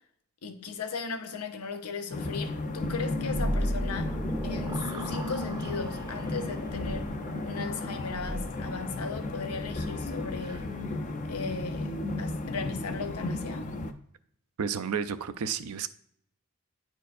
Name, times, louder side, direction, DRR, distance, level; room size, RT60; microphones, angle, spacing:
voice 1, 0.4-4.2 4.4-7.1 7.4-10.7 11.2-13.7, left 4 dB, 90° left, 0.8 m, -37 dB
sound 1, 2.1-13.9, left 2 dB, 35° left, 0.4 m, -34 dB
sound 2, 2.5-7.7, left 2 dB, 70° left, 1.5 m, -43 dB
sound 3, 3.3-10.8, equal, 20° right, 0.5 m, -37 dB
voice 2, 14.6-15.9, right 7 dB, 80° right, 0.5 m, -31 dB
10.0 x 4.5 x 2.5 m
head